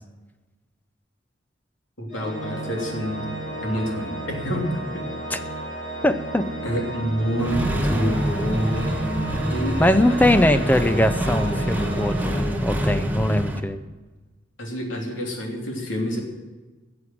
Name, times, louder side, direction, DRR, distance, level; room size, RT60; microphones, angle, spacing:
voice 1, 2.0-3.3 3.6-5.0 5.3-5.4 6.6-10.6 10.9-11.1 14.6-16.2, equal, 85° left, 0 dB, 3.1 m, -28 dB
Organ, 2.1-13.0, right 1 dB, 45° left, 2.5 m, -33 dB
voice 2, 6.0-6.5 9.8-13.8, left 1 dB, 10° left, 11 dB, 0.5 m, -21 dB
Accelerating revving vroom, 7.4-13.6, right 1 dB, 10° right, 1.1 m, -25 dB
14.5 x 7.9 x 7.7 m, 1.2 s
head